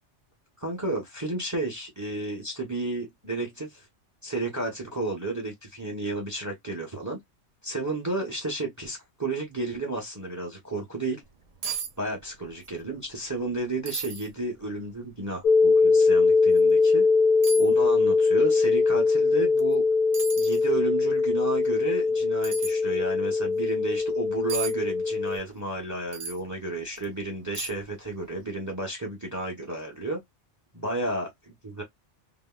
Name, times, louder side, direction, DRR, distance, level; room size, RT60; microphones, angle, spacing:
voice 1, 0.6-3.9 4.2-7.2 7.6-11.2 12.0-17.0 17.6-19.8 20.4-30.2 30.7-31.8, right 2 dB, 20° right, 0.6 m, -32 dB
sound 1, 11.3-11.4 11.6-11.9 12.2-12.8 13.1-13.2 13.9-14.3 14.9-15.0 16.5-16.7 17.4-17.7 19.6-19.7 20.1-20.6 22.4-22.7 24.5-24.7 26.1-26.4 27.0-27.1 27.5-28.0 28.2-28.4, right 5 dB, 60° right, 0.4 m, -34 dB
sound 2, 15.4-25.4, left 4 dB, 60° left, 0.6 m, -22 dB
3.7 x 2.0 x 2.2 m
omnidirectional pair, 1.2 m